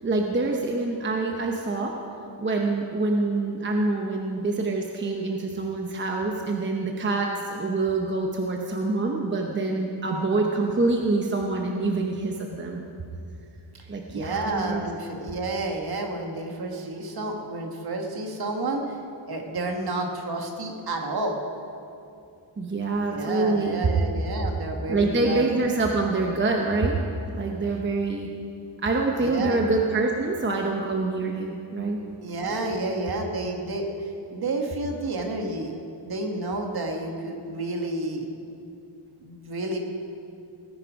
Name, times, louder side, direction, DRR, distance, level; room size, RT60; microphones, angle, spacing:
voice 1, 0.0-1.9 2.4-12.8 13.9-14.9 22.6-23.9 24.9-27.0 27.3-28.3 28.8-32.0, right 3 dB, 25° right, 1 dB, 0.8 m, -26 dB
voice 2, 14.1-19.0 19.3-21.4 23.1-25.5 29.2-29.6 32.2-35.7 36.0-38.3 39.2-39.8, right 2 dB, 50° right, 2 dB, 1.7 m, -30 dB
18.5 x 9.8 x 5.2 m, 2.6 s
wide cardioid pair, 180°, 49 cm